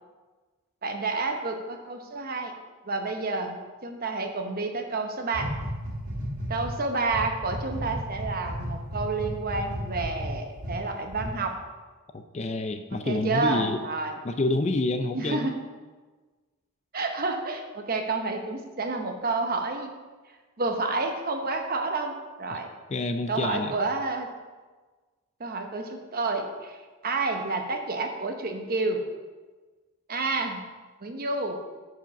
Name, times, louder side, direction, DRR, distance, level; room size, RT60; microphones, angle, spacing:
voice 1, 0.8-2.5 2.8-5.5 6.5-11.5 13.0-14.2 15.1-15.5 16.9-19.9 20.6-22.7 23.3-24.3 25.4-26.8 27.0-29.0 30.1-30.6 31.0-31.6, right 3 dB, 40° right, 4 dB, 1.0 m, -29 dB
sound 1, 5.3-6.7 7.1-10.8 11.1-11.3, equal, 85° right, 1.9 m, -33 dB
voice 2, 12.1-13.8 14.2-15.5 22.5-22.6 22.9-23.7, left 2 dB, 30° left, 8 dB, 0.4 m, -28 dB
9.2 x 5.0 x 5.7 m, 1.3 s
head